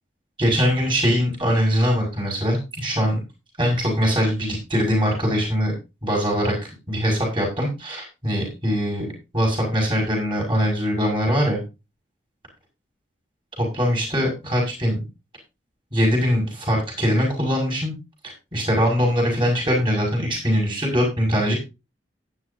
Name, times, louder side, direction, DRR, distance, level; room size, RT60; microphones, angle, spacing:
voice 1, 0.4-3.2 3.6-5.7 6.0-6.5 6.9-9.1 9.3-11.6 13.6-15.0 15.9-17.9 18.5-21.6, equal, 25° right, -1 dB, 6.5 m, -22 dB
14.5 x 11.0 x 2.8 m, 0.27 s
head